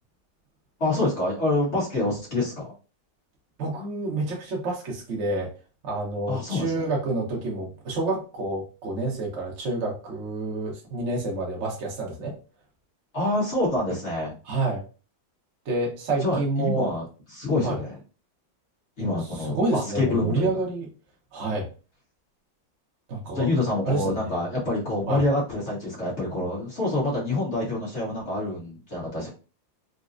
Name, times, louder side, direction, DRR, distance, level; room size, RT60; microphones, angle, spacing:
voice 1, 0.8-2.7 6.3-6.9 13.1-14.3 16.2-17.0 17.3-18.0 19.0-20.5 23.3-29.3, left 2 dB, 40° left, -4 dB, 1.3 m, -26 dB
voice 2, 3.6-5.5 5.8-12.3 14.4-14.8 15.7-16.9 17.6-17.8 19.0-20.9 21.3-21.7 23.1-23.5 23.9-24.4 25.1-25.2, right 2 dB, 55° right, -2 dB, 0.8 m, -28 dB
4.0 x 2.1 x 2.5 m, 0.34 s
omnidirectional pair, 2.2 m